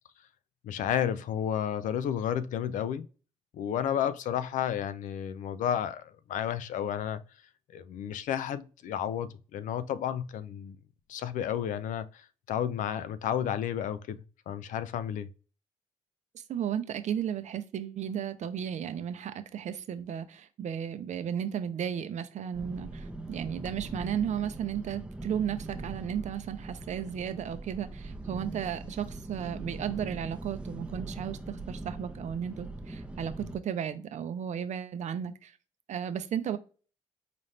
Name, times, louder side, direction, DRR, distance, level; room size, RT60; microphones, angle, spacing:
voice 1, 0.6-3.1 3.5-7.2 7.7-10.8 11.1-15.3, left 9 dB, 70° left, 0.4 m, -32 dB
voice 2, 16.3-35.5 35.9-36.6, right 9 dB, 60° right, 0.6 m, -34 dB
sound 1, 22.5-33.6, right 2 dB, 5° right, 0.6 m, -41 dB
4.1 x 2.5 x 3.2 m
supercardioid pair, 55°, 14 cm